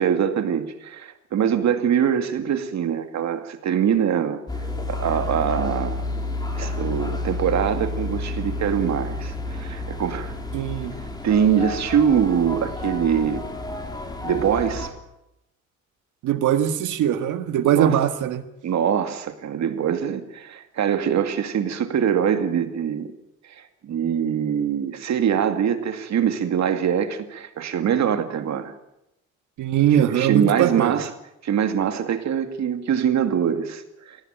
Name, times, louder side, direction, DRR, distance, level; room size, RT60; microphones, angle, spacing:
voice 1, 0.0-4.4 4.9-6.1 6.6-10.3 11.2-13.4 14.2-14.9 17.8-18.0 18.6-23.1 23.5-28.7 29.9-31.1 31.4-34.3, right 8 dB, 65° right, 8 dB, 2.3 m, -23 dB
sound 1, 4.5-14.9, left 2 dB, 15° left, 3.7 m, -30 dB
voice 2, 10.5-10.9 16.2-18.4 29.6-31.0, right 10 dB, 80° right, 9 dB, 1.8 m, -21 dB
18.0 x 16.5 x 9.0 m, 0.86 s
cardioid pair, 90°, 30 cm